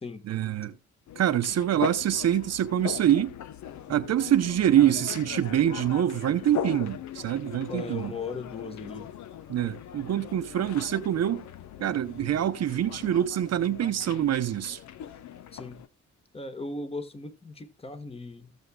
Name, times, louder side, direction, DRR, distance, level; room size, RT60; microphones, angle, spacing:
voice 1, 0.3-0.7 1.2-3.3 3.9-8.1 9.5-11.4 11.8-14.8, right 11 dB, 55° right, 0.8 m, -25 dB
sound 1, 1.1-15.9, left 10 dB, 70° left, 0.9 m, -40 dB
voice 2, 7.7-9.1 15.5-15.8 16.3-18.5, left 3 dB, 20° left, 1.5 m, -37 dB
16.5 x 7.2 x 2.3 m
cardioid pair, 90°, 30 cm